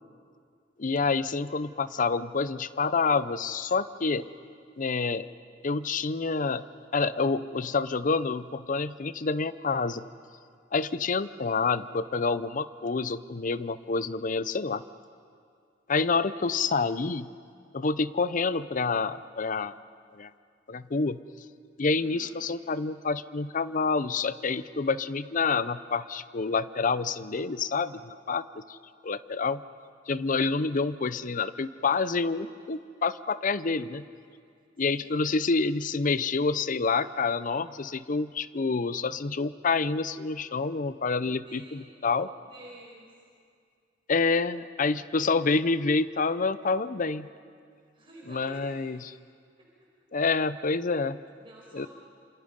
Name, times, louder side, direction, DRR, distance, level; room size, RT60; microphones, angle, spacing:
voice 1, 0.8-4.3 4.8-5.3 5.6-6.6 6.9-10.0 10.7-14.8 15.9-17.3 17.7-19.7 20.1-20.3 20.7-21.2 21.8-28.8 29.0-29.6 30.1-34.0 34.8-42.3 44.1-47.3 48.3-49.1 50.1-51.2 51.7-51.9, left 4 dB, 45° left, 15 dB, 0.6 m, -28 dB
voice 2, 22.0-22.4 34.8-35.1 41.2-43.1 47.9-49.0 49.6-49.7 51.4-51.9, right 1 dB, 30° right, -4 dB, 5.0 m, -51 dB
27.5 x 27.0 x 5.3 m, 2.3 s
head